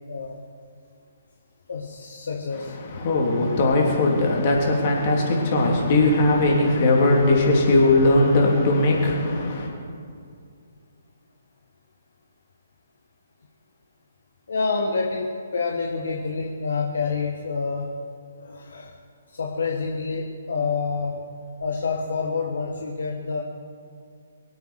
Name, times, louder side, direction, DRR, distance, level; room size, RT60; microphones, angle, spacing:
voice 1, 0.1-0.4 1.7-2.8 14.5-18.0 18.4-18.9 19.3-21.3 21.6-23.4, left 4 dB, 60° left, 0 dB, 1.4 m, -28 dB
voice 2, 2.8-9.7, left 2 dB, 40° left, -1 dB, 3.3 m, -19 dB
23.0 x 8.1 x 6.4 m, 2.3 s
figure-of-eight pair, 130°, 0 cm